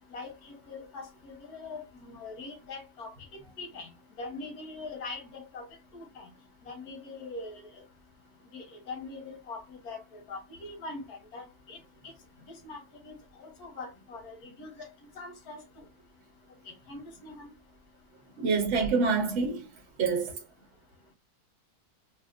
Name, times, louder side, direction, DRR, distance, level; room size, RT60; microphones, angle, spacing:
voice 1, 0.1-3.1 3.6-3.9 4.2-5.6 5.9-6.3 6.7-7.7 8.5-11.8 12.6-12.8 13.0-13.1 13.4-14.9 15.2-15.6 16.9-17.5, left 3 dB, 80° left, 1.6 m, -42 dB
voice 2, 18.4-19.7 20.0-20.4, right 4 dB, 55° right, 1.3 m, -26 dB
4.2 x 2.4 x 2.5 m
omnidirectional pair, 1.6 m